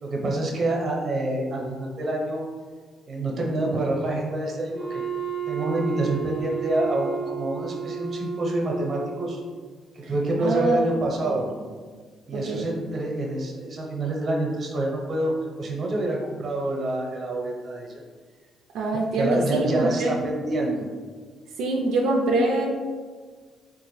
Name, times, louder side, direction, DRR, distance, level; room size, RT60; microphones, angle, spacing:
voice 1, 0.0-2.4 3.1-5.0 5.5-9.4 9.9-11.5 12.3-17.9 19.1-20.9, right 2 dB, 45° right, -1 dB, 0.8 m, -27 dB
Wind instrument woodwind instrument, 4.7-9.4, right 6 dB, 10° right, 0.6 m, -32 dB
voice 2, 10.4-11.0 12.3-12.7 18.7-20.1 21.6-22.7, right 2 dB, 90° right, -2 dB, 0.4 m, -24 dB
3.4 x 2.5 x 3.1 m, 1.5 s
cardioid pair, 90°, 0 cm